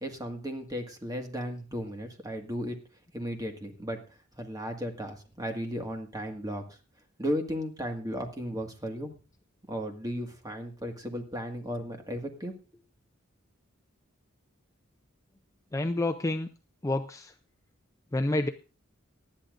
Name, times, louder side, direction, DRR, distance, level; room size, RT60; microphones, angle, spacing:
voice 1, 0.0-2.8 3.1-4.0 4.4-6.8 7.2-9.1 9.7-12.5, equal, 20° right, 4 dB, 1.8 m, -35 dB
voice 2, 15.7-16.5 16.8-17.3 18.1-18.5, left 2 dB, 15° left, 7 dB, 0.5 m, -28 dB
19.0 x 11.5 x 2.5 m, 0.35 s
head